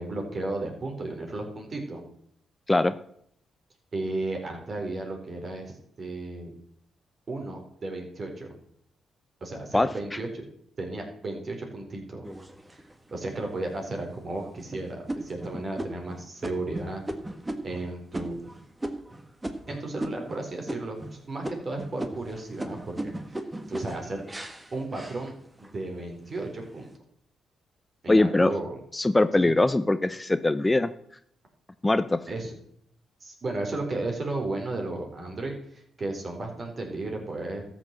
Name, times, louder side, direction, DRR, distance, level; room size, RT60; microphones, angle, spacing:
voice 1, 0.0-2.0 3.9-6.5 7.3-8.5 9.4-10.4 10.8-12.2 12.7-12.8 13.1-17.0 17.6-18.4 19.7-23.4 23.7-24.2 24.7-25.3 25.6-26.9 28.0-28.8 29.4-29.5 32.3-32.5 33.2-37.6, right 2 dB, 45° right, 2 dB, 4.2 m, -34 dB
sound 1, 12.2-13.1 13.7-13.8 14.3-14.6 15.1-20.4 20.7-21.2 21.4-25.8 26.2-26.8, right 1 dB, 20° right, 1.8 m, -37 dB
voice 2, 28.1-28.5 28.9-30.9 31.8-32.2, left 2 dB, 20° left, 13 dB, 0.7 m, -22 dB
13.5 x 6.2 x 7.7 m, 0.68 s
hypercardioid pair, 50°, 0 cm